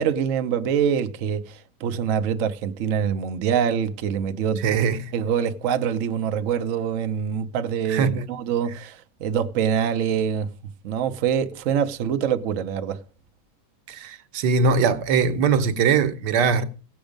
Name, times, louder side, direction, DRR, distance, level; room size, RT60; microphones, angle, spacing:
voice 1, 0.0-1.4 1.8-4.6 5.1-8.9 9.2-10.5 10.8-13.0, right 8 dB, 55° right, 1.0 m, -24 dB
voice 2, 4.6-5.1 7.9-8.3 13.9-16.6, right 5 dB, 85° right, 1.5 m, -21 dB
16.5 x 7.1 x 5.1 m
omnidirectional pair, 1.8 m